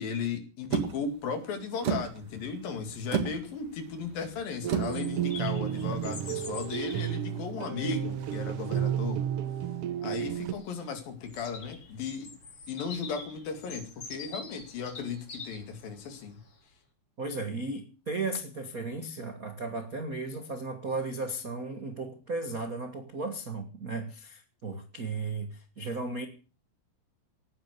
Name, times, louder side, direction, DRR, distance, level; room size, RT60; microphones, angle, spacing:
voice 1, 0.0-9.2 10.0-12.3 12.7-16.4, left 5 dB, 70° left, 4.0 m, -36 dB
sound 1, 0.7-6.3, right 7 dB, 45° right, 2.2 m, -35 dB
Bird vocalization bird call bird song, 3.9-16.6, left 4 dB, 40° left, 3.7 m, -47 dB
sound 2, 4.6-10.5, right 10 dB, 85° right, 1.2 m, -32 dB
voice 2, 17.2-26.3, right 3 dB, 65° right, 0.8 m, -35 dB
18.0 x 9.9 x 6.7 m
omnidirectional pair, 4.2 m